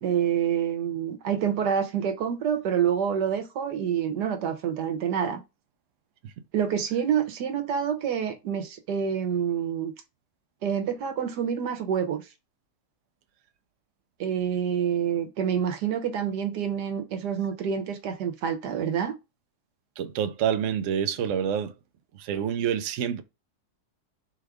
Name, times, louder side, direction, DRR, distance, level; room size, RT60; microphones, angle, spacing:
voice 1, 0.0-5.4 6.5-9.9 10.6-12.2 14.2-19.1, right 8 dB, 85° right, 1.4 m, -27 dB
voice 2, 20.0-21.8 22.1-23.2, right 8 dB, 65° right, 0.8 m, -27 dB
4.3 x 2.3 x 4.8 m
omnidirectional pair, 1.7 m